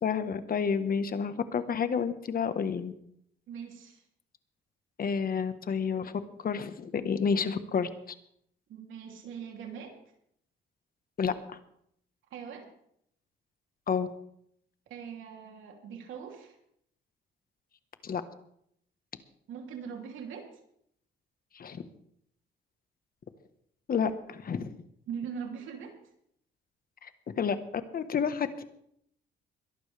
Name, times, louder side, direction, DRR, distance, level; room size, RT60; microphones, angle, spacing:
voice 1, 0.0-2.9 5.0-6.1 6.4-7.9 11.2-11.6 13.9-14.1 18.0-18.2 21.5-21.8 23.9-24.7 27.0-27.1 27.4-27.6 27.9-28.6, left 6 dB, 50° left, 11 dB, 1.4 m, -30 dB
voice 2, 3.5-4.0 8.7-9.9 12.3-12.7 14.9-16.6 19.5-20.5 25.1-25.9, right 7 dB, 80° right, 2 dB, 3.2 m, -41 dB
22.5 x 11.5 x 3.5 m, 0.70 s
cardioid pair, 90°, 20 cm